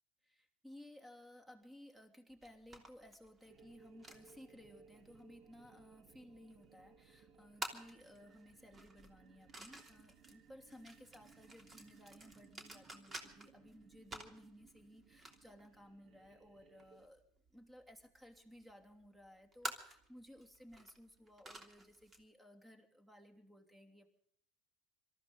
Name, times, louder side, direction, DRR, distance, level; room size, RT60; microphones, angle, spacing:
voice 1, 0.2-17.2 17.5-24.2, equal, 10° right, 5 dB, 3.1 m, -58 dB
sound 1, 2.3-22.2, right 2 dB, 25° right, 3.1 m, -53 dB
sound 2, 3.5-17.1, right 6 dB, 50° right, 1.9 m, -64 dB
26.0 x 14.0 x 4.0 m, 0.67 s
hypercardioid pair, 75°, 0 cm